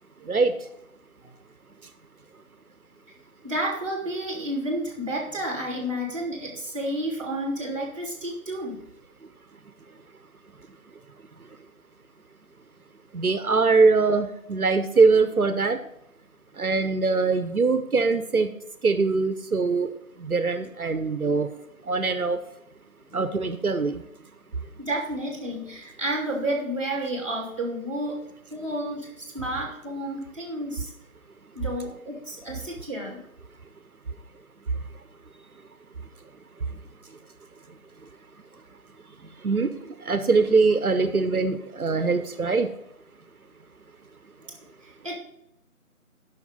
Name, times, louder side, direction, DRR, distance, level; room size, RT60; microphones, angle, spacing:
voice 1, 3.4-8.8 24.8-28.2 28.5-30.9 31.5-33.2 44.8-45.2, right 1 dB, 20° right, -1 dB, 2.3 m, -31 dB
voice 2, 13.1-15.8 16.6-18.5 18.8-19.9 20.2-21.5 21.9-22.4 23.1-24.0 39.4-39.7 40.0-42.7, right 4 dB, 85° right, 10 dB, 0.9 m, -22 dB
10.0 x 5.9 x 5.4 m, 0.80 s
figure-of-eight pair, 170°, 42 cm